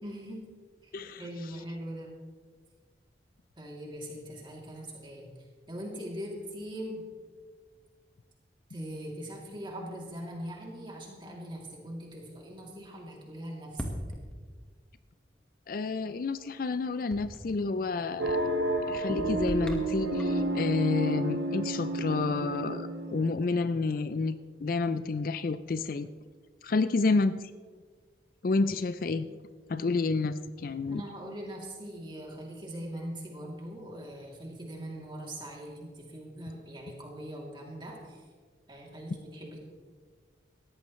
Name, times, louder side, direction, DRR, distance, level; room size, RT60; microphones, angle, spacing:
voice 1, 0.0-0.4 0.8-2.1 3.6-7.0 8.7-13.9 30.9-38.2 38.7-39.6, equal, 25° right, -2 dB, 2.8 m, -41 dB
sound 1, 13.8-14.8 17.1-17.6 19.2-20.5, equal, 5° left, 1.4 m, -40 dB
voice 2, 15.7-18.4 18.9-26.1 26.6-27.5 28.4-29.3 29.7-31.0, left 3 dB, 50° left, 12 dB, 0.4 m, -29 dB
sound 2, 18.2-23.6, right 1 dB, 85° right, 1.3 m, -31 dB
18.5 x 14.0 x 3.2 m, 1.6 s
head